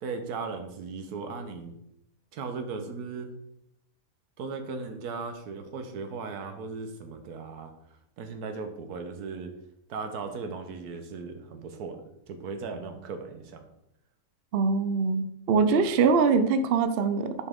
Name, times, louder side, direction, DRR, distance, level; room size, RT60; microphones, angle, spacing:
voice 1, 0.0-1.7 2.3-3.3 4.4-7.7 8.2-9.5 9.9-12.0 12.3-13.6 15.8-15.9, right 4 dB, 85° right, 6 dB, 1.4 m, -37 dB
voice 2, 14.5-17.3, right 5 dB, 65° right, 10 dB, 0.6 m, -23 dB
6.2 x 5.6 x 3.6 m, 0.80 s
omnidirectional pair, 1.6 m